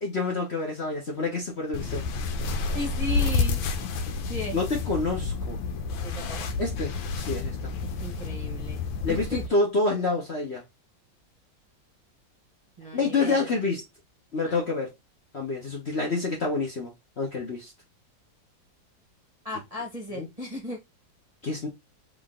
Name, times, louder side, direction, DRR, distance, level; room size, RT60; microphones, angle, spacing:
voice 1, 0.0-2.0 4.5-5.6 6.6-7.5 9.0-10.6 12.9-13.8 14.3-14.9 15.3-17.7 20.1-20.3 21.4-21.7, left 3 dB, 40° left, 1.2 m, -28 dB
sound 1, 1.7-9.5, left 4 dB, 85° left, 1.5 m, -29 dB
voice 2, 2.7-3.6 4.3-4.6 6.0-6.5 8.0-8.8 9.1-9.4 12.8-13.4 14.4-14.7 19.4-20.8, left 2 dB, 25° right, 1.1 m, -35 dB
3.8 x 3.2 x 3.7 m
omnidirectional pair, 2.1 m